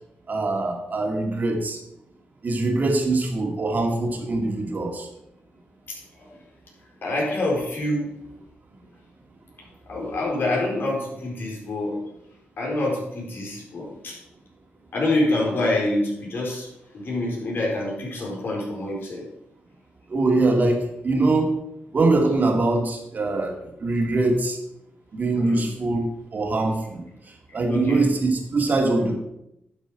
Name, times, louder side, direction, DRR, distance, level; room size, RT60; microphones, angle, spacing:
voice 1, 0.3-1.8 2.4-5.1 20.1-21.5 21.9-24.6 25.1-27.1 27.5-29.2, right 2 dB, 45° right, 2 dB, 2.2 m, -23 dB
voice 2, 7.0-8.1 9.9-12.0 12.6-14.2 14.9-16.7 16.9-19.2 25.4-25.6 27.7-28.1, left 2 dB, 60° left, -2 dB, 4.3 m, -26 dB
11.0 x 6.6 x 5.0 m, 0.84 s
cardioid pair, 95°, 4 cm